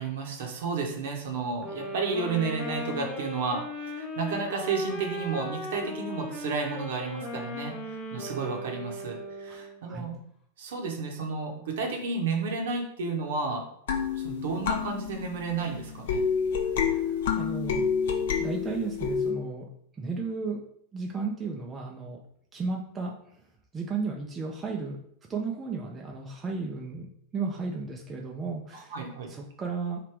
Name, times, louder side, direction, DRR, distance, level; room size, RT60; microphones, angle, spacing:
voice 1, 0.0-10.2 10.6-13.6 14.2-16.2 28.9-29.3, right 4 dB, 55° right, 2 dB, 1.0 m, -32 dB
sound 1, 1.6-9.8, left 1 dB, 25° left, 1.0 m, -37 dB
voice 2, 9.5-10.1 16.8-17.9 18.4-19.7 19.9-20.6 20.9-22.2 22.5-23.4 23.7-25.0 25.3-27.1 27.3-28.9 29.3-30.0, right 4 dB, 20° right, 0 dB, 0.5 m, -34 dB
sound 2, 13.9-19.3, left 6 dB, 55° left, 0.6 m, -29 dB
3.3 x 2.9 x 4.6 m, 0.67 s
figure-of-eight pair, 90°, 0 cm